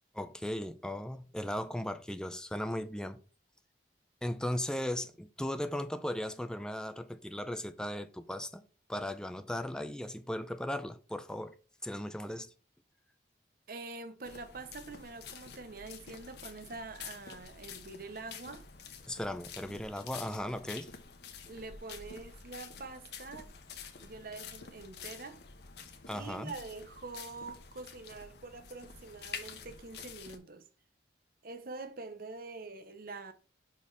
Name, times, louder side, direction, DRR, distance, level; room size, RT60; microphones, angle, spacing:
voice 1, 0.2-3.2 4.2-8.6 8.9-11.6 11.8-12.5 19.1-20.9 26.1-26.5, left 1 dB, 5° left, 0.4 m, -37 dB
voice 2, 13.7-18.6 21.4-23.5 24.0-25.4 26.0-30.7 31.4-33.3, right 3 dB, 50° right, 0.8 m, -45 dB
sound 1, 14.2-30.4, left 6 dB, 60° left, 1.0 m, -48 dB
5.3 x 4.5 x 4.6 m
head